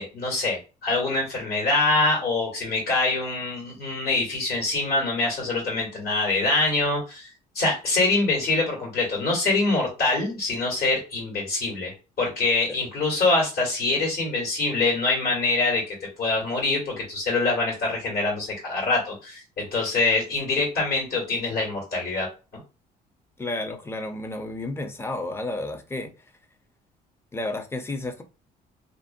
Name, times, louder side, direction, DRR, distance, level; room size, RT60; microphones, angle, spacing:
voice 1, 0.0-7.3 7.5-22.3, left 3 dB, 65° left, 1.4 m, -24 dB
voice 2, 23.4-26.1 27.3-28.2, left 2 dB, 15° left, 0.4 m, -31 dB
2.5 x 2.1 x 2.5 m
cardioid pair, 110°, 17 cm